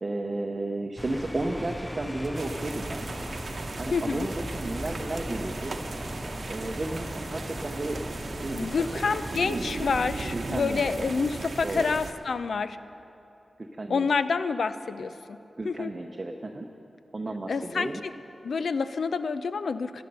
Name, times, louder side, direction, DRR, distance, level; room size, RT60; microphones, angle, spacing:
voice 1, 0.0-3.1 3.8-5.8 6.5-8.0 8.3-8.7 9.3-9.7 10.3-10.8 11.6-11.9 13.6-14.1 15.6-16.7 17.1-18.0, right 2 dB, 30° right, 2 dB, 0.7 m, -33 dB
sound 1, 1.0-9.4, equal, 5° left, 0.3 m, -38 dB
sound 2, 2.3-12.1, right 3 dB, 60° right, 0.9 m, -37 dB
voice 2, 3.9-4.3 8.5-12.8 13.9-15.4 15.6-15.9 17.5-18.1 18.4-20.0, left 5 dB, 75° left, 12 dB, 0.5 m, -28 dB
17.5 x 11.5 x 5.4 m, 2.8 s
wide cardioid pair, 140°, 0 cm